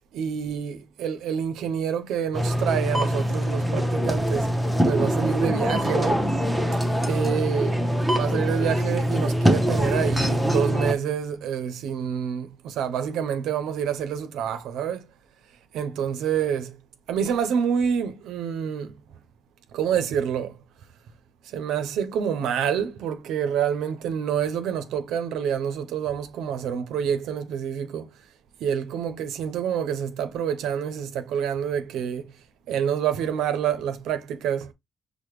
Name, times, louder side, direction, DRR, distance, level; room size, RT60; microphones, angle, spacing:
voice 1, 0.1-4.5 4.8-6.3 7.0-7.8 8.1-15.1 15.7-16.8 17.1-18.9 19.7-20.6 21.5-28.1 28.6-32.3 32.7-34.7, right 8 dB, 90° right, 0.5 m, -27 dB
sound 1, 2.3-10.9, equal, ahead, 0.8 m, -23 dB
4.7 x 2.1 x 3.0 m
cardioid pair, 75°, 0 cm